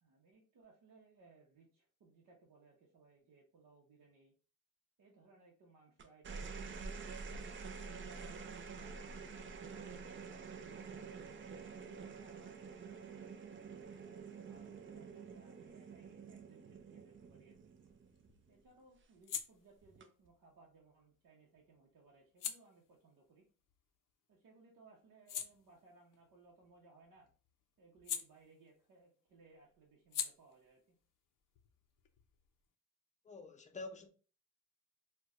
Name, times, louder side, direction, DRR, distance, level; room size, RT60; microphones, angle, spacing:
voice 1, 0.0-4.3 5.0-6.6 7.0-8.4 8.8-11.3 11.7-13.3 14.0-17.7 18.5-23.4 24.3-27.3 27.8-31.0, right 3 dB, 70° right, 0.9 m, -65 dB
sound 1, 6.0-18.6 19.8-20.3, right 5 dB, 40° right, 0.4 m, -48 dB
sound 2, 17.5-24.4 24.8-29.0 29.3-32.7, left 9 dB, 75° left, 0.5 m, -48 dB
voice 2, 33.2-34.1, left 3 dB, 20° left, 0.5 m, -47 dB
4.4 x 2.2 x 2.4 m
cardioid pair, 115°, 33 cm